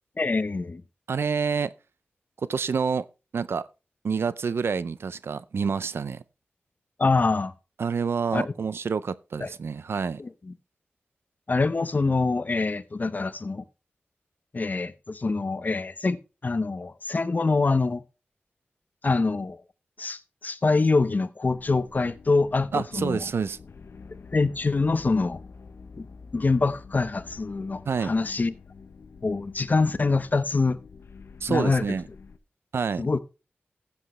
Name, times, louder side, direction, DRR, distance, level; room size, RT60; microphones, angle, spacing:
voice 1, 0.2-0.8 7.0-7.5 8.3-8.5 9.4-9.5 10.2-10.5 11.5-13.6 14.5-18.0 19.0-19.6 20.0-23.3 24.3-25.4 26.0-26.1 26.3-28.5 29.2-30.8 31.5-31.8 33.0-33.2, left 3 dB, 45° left, 0.8 m, -25 dB
voice 2, 1.1-1.7 2.5-3.1 3.3-3.6 4.0-6.2 7.8-10.2 22.7-23.6 27.9-28.1 31.4-32.0 32.7-33.0, right 5 dB, 80° right, 0.5 m, -27 dB
sound 1, 21.4-32.4, left 5 dB, 80° left, 0.8 m, -47 dB
14.5 x 8.0 x 3.1 m
wide cardioid pair, 70°, 4 cm